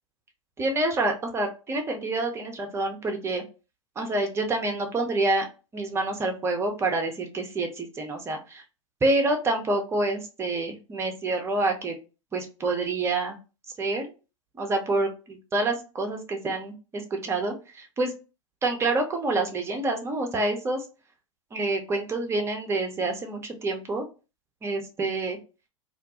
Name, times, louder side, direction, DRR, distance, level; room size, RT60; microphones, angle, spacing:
voice 1, 0.6-3.4 4.0-5.5 5.7-8.6 9.0-12.0 12.3-13.4 13.8-14.1 14.6-18.1 18.6-20.8 21.5-24.1 24.6-25.4, right 2 dB, 15° right, 3 dB, 0.6 m, -27 dB
2.4 x 2.1 x 2.8 m, 0.31 s
figure-of-eight pair, 90°, 16 cm